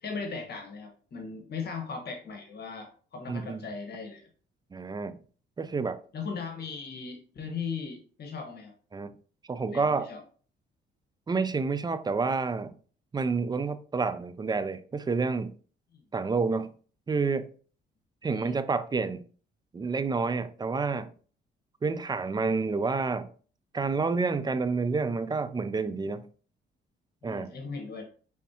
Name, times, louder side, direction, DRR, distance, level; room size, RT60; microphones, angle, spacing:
voice 1, 0.0-4.3 6.1-8.7 9.7-10.2 15.9-16.0 18.3-18.6 27.2-28.0, left 5 dB, 55° left, 1.2 m, -38 dB
voice 2, 3.3-3.7 4.7-5.2 5.6-6.0 8.9-9.1 9.5-10.1 11.3-12.7 13.1-15.5 16.1-16.7 17.1-17.5 18.2-19.2 19.7-21.1 21.8-23.3 23.7-26.3 27.2-27.5, right 4 dB, 20° right, 0.4 m, -29 dB
5.2 x 3.6 x 2.8 m
cardioid pair, 90°, 20 cm